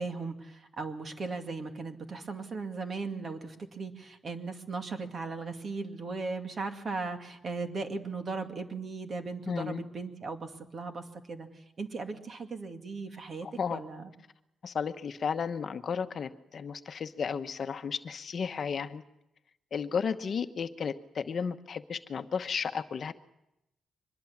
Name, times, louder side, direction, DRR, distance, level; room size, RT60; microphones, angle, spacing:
voice 1, 0.0-14.1, right 4 dB, 40° right, 6 dB, 2.2 m, -37 dB
voice 2, 9.5-9.8 13.4-13.8 14.6-19.0 19.7-23.1, left 6 dB, 45° left, 8 dB, 1.0 m, -33 dB
24.0 x 21.0 x 7.2 m, 0.87 s
cardioid pair, 120°, 0 cm